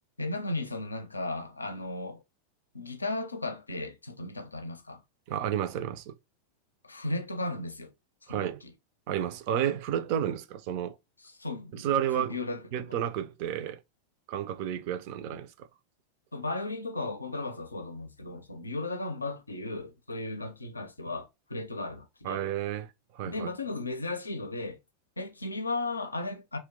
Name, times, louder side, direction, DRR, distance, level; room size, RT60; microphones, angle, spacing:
voice 1, 0.2-2.2 2.7-5.0 6.8-7.9 8.3-8.5 11.4-11.9 12.1-13.0 16.3-22.4 23.2-24.8 25.2-26.6, left 2 dB, 80° left, 0.5 m, -35 dB
voice 2, 5.3-6.2 8.3-8.6 9.1-11.0 11.7-12.4 12.7-13.8 14.3-15.7 22.2-23.5, right 10 dB, 45° right, 0.4 m, -31 dB
2.8 x 2.2 x 3.5 m
figure-of-eight pair, 90°, 0 cm